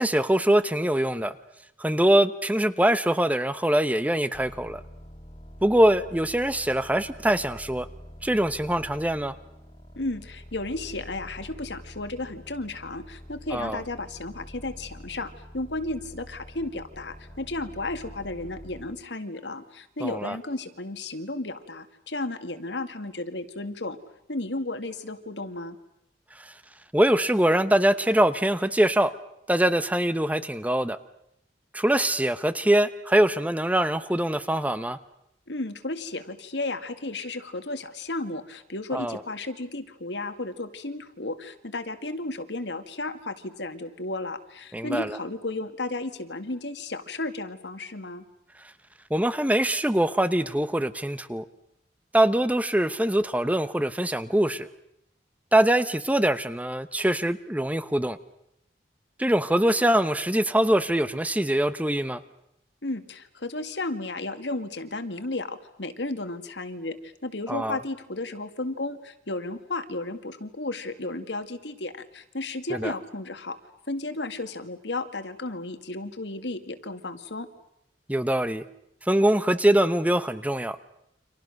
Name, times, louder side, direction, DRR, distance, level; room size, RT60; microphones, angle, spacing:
voice 1, 0.0-1.3 1.8-4.8 5.6-7.9 8.2-9.3 13.5-13.8 20.0-20.4 26.4-26.5 26.9-29.1 29.5-31.0 31.7-35.0 38.9-39.2 44.7-45.2 49.1-51.4 52.1-54.7 55.5-58.2 59.2-62.2 67.5-67.8 72.7-72.9 78.1-78.6 79.0-80.8, right 1 dB, 10° right, 13 dB, 0.9 m, -23 dB
sound 1, 4.3-19.1, equal, 30° left, 2.3 m, -46 dB
voice 2, 10.0-24.0 24.3-25.8 35.5-48.2 62.8-73.6 73.9-77.5, left 2 dB, 85° left, 9 dB, 2.2 m, -33 dB
29.5 x 26.0 x 6.5 m, 0.79 s
head